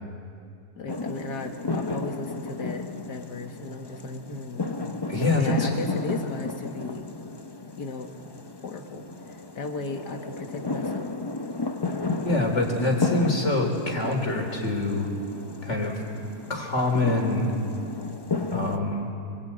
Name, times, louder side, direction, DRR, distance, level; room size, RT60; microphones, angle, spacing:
voice 1, 0.8-4.7 5.3-7.1 7.8-8.1 8.6-11.1, left 3 dB, 80° left, 5 dB, 2.3 m, -36 dB
sound 1, 0.9-18.8, left 3 dB, 25° left, 0.6 m, -33 dB
voice 2, 5.1-5.7 12.2-15.1 15.6-16.0 16.5-17.5 18.5-19.1, left 2 dB, 45° left, 2 dB, 4.0 m, -25 dB
25.0 x 23.5 x 8.9 m, 2.4 s
omnidirectional pair, 1.8 m